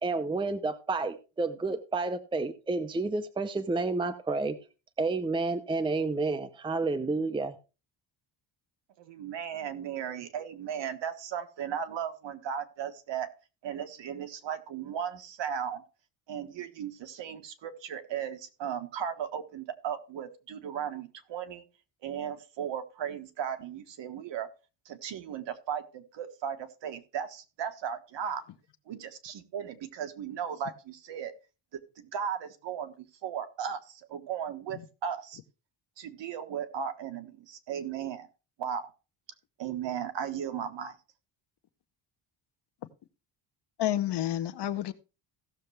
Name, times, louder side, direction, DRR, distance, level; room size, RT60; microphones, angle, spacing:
voice 1, 0.0-4.6 5.0-7.6, right 3 dB, 10° right, 0.6 m, -30 dB
voice 2, 9.0-13.3 13.6-15.8 16.3-21.6 22.0-24.5 24.8-28.4 28.9-31.3 32.0-35.4 36.0-38.3 38.6-38.9 39.6-41.0, right 8 dB, 60° right, 1.5 m, -36 dB
voice 3, 43.8-44.9, left 12 dB, 55° left, 1.0 m, -29 dB
16.5 x 6.7 x 3.3 m
cardioid pair, 160°, 48 cm